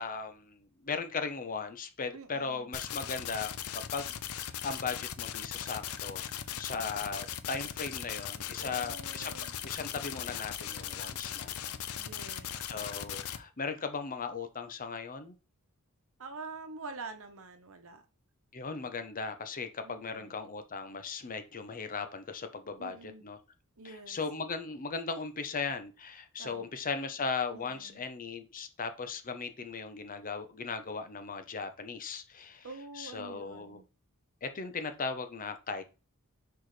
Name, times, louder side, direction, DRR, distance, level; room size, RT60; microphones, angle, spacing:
voice 1, 0.0-9.3 9.6-11.8 12.7-15.3 18.5-23.0 23.2-23.4 24.1-32.7 33.0-33.8 34.4-35.8, left 4 dB, 40° left, 0.8 m, -38 dB
voice 2, 2.1-2.7 8.6-9.6 11.9-12.7 16.2-18.0 19.8-20.4 22.8-23.3 23.8-24.2 26.4-26.7 27.5-28.0 32.6-33.9, right 3 dB, 65° right, 1.0 m, -46 dB
sound 1, 2.7-13.4, left 9 dB, 70° left, 0.6 m, -39 dB
6.2 x 4.7 x 3.2 m
head